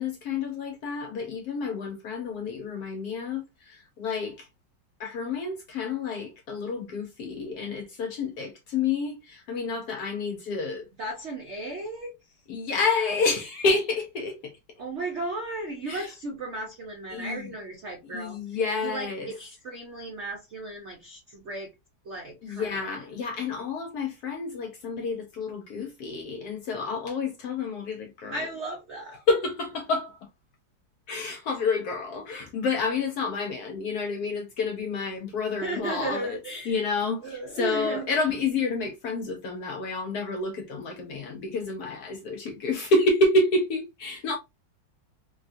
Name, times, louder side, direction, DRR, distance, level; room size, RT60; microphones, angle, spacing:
voice 1, 0.0-4.5 5.0-10.8 12.5-14.5 15.9-16.1 17.1-17.4 18.1-19.3 22.4-28.4 29.3-30.2 31.1-36.2 36.7-44.4, left 3 dB, 70° left, 0.9 m, -29 dB
voice 2, 11.0-12.3 14.8-21.7 22.0-23.1 28.3-29.2 35.6-36.8 37.2-38.1, right 2 dB, 80° right, 0.6 m, -35 dB
3.4 x 2.3 x 2.5 m
omnidirectional pair, 2.1 m